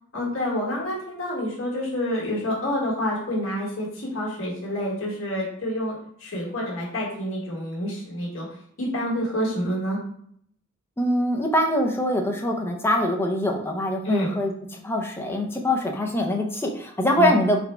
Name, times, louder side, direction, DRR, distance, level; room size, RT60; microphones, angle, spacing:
voice 1, 0.1-8.5 8.8-10.0 14.0-14.3 17.2-17.3, equal, 70° left, -5 dB, 1.5 m, -28 dB
voice 2, 11.0-17.6, left 1 dB, 10° left, 2 dB, 0.5 m, -24 dB
4.1 x 2.2 x 4.3 m, 0.64 s
head